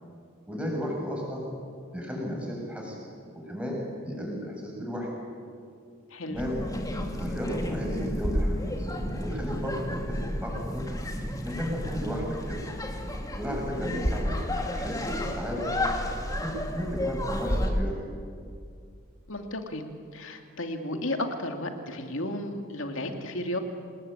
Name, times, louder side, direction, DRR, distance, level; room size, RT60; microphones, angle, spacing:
voice 1, 0.5-1.4 1.9-3.0 3.3-5.1 6.3-6.6 7.2-8.9 9.2-10.9 11.4-12.6 13.4-15.7 16.4-17.9, equal, 5° right, -2 dB, 7.2 m, -34 dB
voice 2, 6.1-6.4 19.3-23.6, left 1 dB, 65° left, 5 dB, 2.6 m, -33 dB
sound 1, 6.3-17.7, left 1 dB, 15° left, 2.4 m, -31 dB
26.5 x 20.5 x 9.0 m, 2.3 s
head